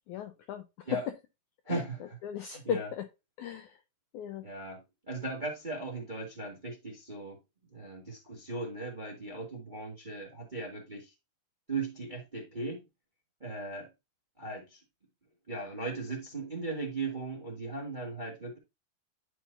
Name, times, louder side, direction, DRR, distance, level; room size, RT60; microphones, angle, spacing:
voice 1, 0.1-0.6 0.9-1.0 1.7-1.8 2.2-3.1 3.4-3.7 4.1-4.4, left 9 dB, 90° left, 1.7 m, -36 dB
voice 2, 1.6-2.2 2.5-2.9 4.4-4.8 5.1-7.4 7.7-11.1 11.7-12.8 13.4-13.9 14.4-14.8 15.5-18.6, right 3 dB, 25° right, 1.0 m, -38 dB
11.5 x 4.6 x 2.6 m
omnidirectional pair, 4.3 m